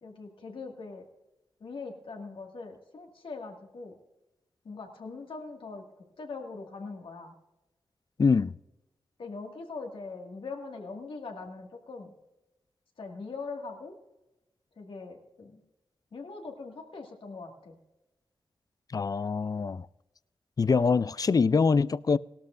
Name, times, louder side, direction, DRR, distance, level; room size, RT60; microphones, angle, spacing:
voice 1, 0.0-1.1 1.6-3.9 4.6-5.8 6.2-7.3 9.2-12.1 13.0-13.9 14.8-15.6 16.1-17.8, left 4 dB, 75° left, 2.0 m, -41 dB
voice 2, 8.2-8.5 18.9-19.9 20.6-22.2, left 5 dB, 45° left, 0.4 m, -24 dB
18.0 x 13.0 x 2.6 m
cardioid pair, 50°, 9 cm